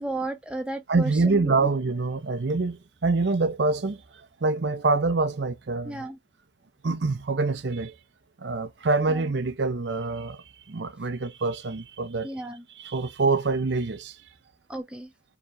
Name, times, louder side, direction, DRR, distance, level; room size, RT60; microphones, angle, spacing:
voice 1, 0.0-1.7 5.8-6.2 9.1-9.3 12.2-12.6 14.7-15.1, right 1 dB, 5° right, 0.8 m, -34 dB
voice 2, 0.9-4.0 4.4-6.1 6.8-8.0 8.4-12.3 12.8-14.2, right 3 dB, 70° right, 0.6 m, -25 dB
4.7 x 2.9 x 2.5 m
head